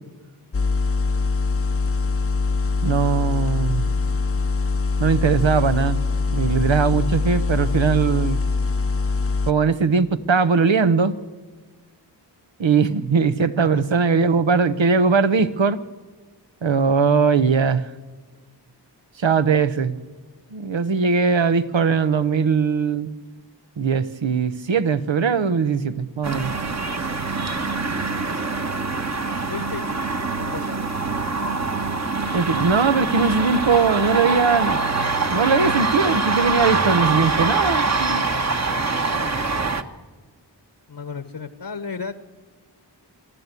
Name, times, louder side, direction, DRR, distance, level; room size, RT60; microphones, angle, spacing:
sound 1, 0.5-9.5, left 4 dB, 30° left, 0.7 m, -23 dB
voice 1, 2.8-3.9 5.0-6.0 6.3-8.4 9.5-11.1 12.6-15.8 16.6-17.9 19.2-20.0 20.5-23.1 23.8-26.5 32.3-34.8 35.3-38.2, right 5 dB, 80° right, 12 dB, 1.0 m, -20 dB
voice 2, 13.6-13.9 28.0-28.3 29.5-29.8 30.4-30.9 40.9-42.2, left 5 dB, 65° left, 11 dB, 1.2 m, -34 dB
sound 2, 26.2-39.8, right 3 dB, 35° right, 1.3 m, -24 dB
26.0 x 12.0 x 8.3 m, 1.4 s
cardioid pair, 45°, 44 cm